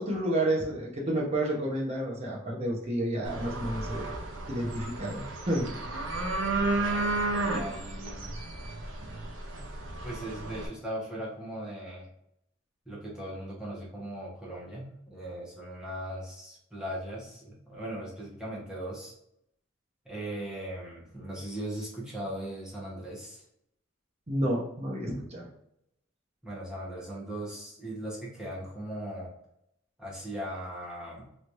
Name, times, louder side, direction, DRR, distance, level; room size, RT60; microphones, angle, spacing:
voice 1, 0.0-4.0 4.5-5.7 24.3-25.5, right 1 dB, 35° right, -2 dB, 0.9 m, -30 dB
sound 1, 3.2-10.7, right 2 dB, 80° right, 0.7 m, -33 dB
voice 2, 6.7-8.3 9.6-9.8 10.0-12.1 12.9-19.1 20.0-23.4 26.4-29.3 30.0-31.3, right 1 dB, 5° right, -6 dB, 1.1 m, -39 dB
3.1 x 3.0 x 2.6 m, 0.77 s
head